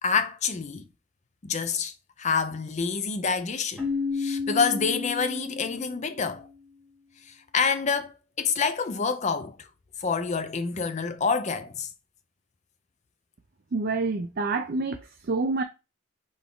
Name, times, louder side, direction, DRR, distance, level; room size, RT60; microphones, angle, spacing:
voice 1, 0.0-0.8 1.4-3.8 4.1-6.5 7.3-9.7 10.0-11.9, left 5 dB, 30° left, 0.4 m, -27 dB
Keyboard (musical), 3.8-6.4, left 4 dB, 5° right, 1.4 m, -32 dB
voice 2, 13.7-15.6, right 3 dB, 45° right, 0.4 m, -27 dB
3.8 x 3.5 x 3.8 m
head